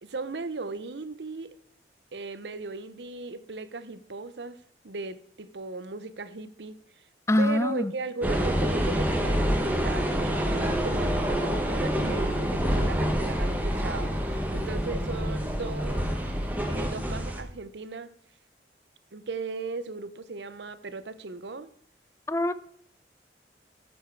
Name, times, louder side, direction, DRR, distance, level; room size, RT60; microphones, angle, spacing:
voice 1, 0.0-1.5 2.1-4.6 4.8-6.8 7.4-16.1 16.7-18.1 19.1-21.7, right 3 dB, 80° right, 0.8 m, -37 dB
voice 2, 7.3-7.9 22.3-22.5, left 1 dB, 15° left, 0.5 m, -24 dB
sound 1, 8.2-17.4, equal, 10° right, 1.2 m, -27 dB
12.5 x 7.2 x 4.6 m
head